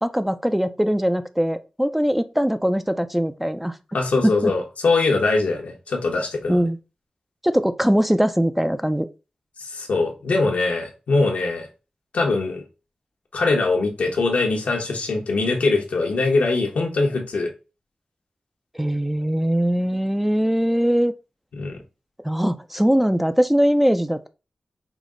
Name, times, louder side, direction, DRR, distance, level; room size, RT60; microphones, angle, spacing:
voice 1, 0.0-3.7 4.2-4.5 6.5-6.8 7.4-9.1 18.7-21.1 22.2-24.3, equal, 5° right, 0.4 m, -21 dB
voice 2, 3.9-6.6 9.6-11.7 12.1-12.6 13.3-17.5 21.6-21.8, left 3 dB, 85° left, 1.0 m, -22 dB
4.9 x 2.0 x 3.7 m
cardioid pair, 45°, 2 cm